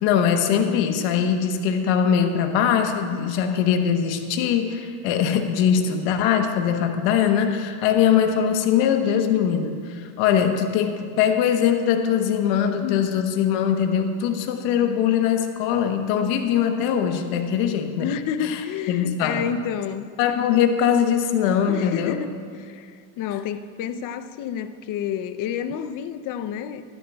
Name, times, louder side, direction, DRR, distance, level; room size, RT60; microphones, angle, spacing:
voice 1, 0.0-18.1 18.4-18.6 18.9-19.4 20.2-22.2, left 8 dB, 70° left, 6 dB, 1.1 m, -21 dB
voice 2, 18.0-20.1 21.7-26.8, left 8 dB, 45° left, 12 dB, 0.6 m, -30 dB
13.0 x 11.5 x 2.3 m, 2.2 s
supercardioid pair, 115°, 45 cm